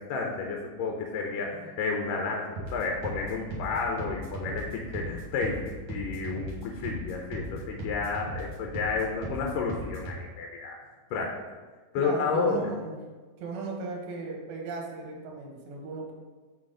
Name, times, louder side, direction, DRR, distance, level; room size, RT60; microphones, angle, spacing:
voice 1, 0.0-10.8 11.1-11.4 11.9-12.7, left 4 dB, 80° left, 1 dB, 2.0 m, -31 dB
sound 1, 2.5-10.2, right 1 dB, 50° right, 1.7 m, -38 dB
voice 2, 12.0-13.0 13.4-16.1, right 3 dB, 70° right, 0 dB, 2.0 m, -36 dB
6.2 x 4.7 x 3.7 m, 1.3 s
omnidirectional pair, 4.5 m